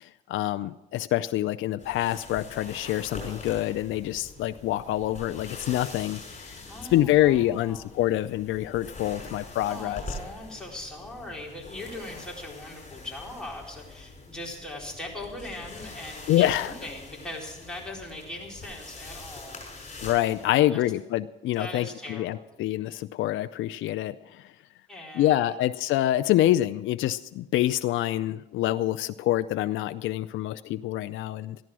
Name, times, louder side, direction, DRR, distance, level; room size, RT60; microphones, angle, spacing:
voice 1, 0.0-6.6 6.9-10.0 16.3-16.7 20.0-24.5 25.1-31.6, left 14 dB, 80° left, 12 dB, 0.4 m, -26 dB
sound 1, 1.8-20.5, left 2 dB, 35° left, 6.2 m, -43 dB
voice 2, 6.7-7.9 9.7-19.6 20.5-20.8 21.6-22.5 24.9-25.6, left 1 dB, 5° left, -3 dB, 4.1 m, -40 dB
14.0 x 11.0 x 6.1 m, 0.98 s
cardioid pair, 90°, 20 cm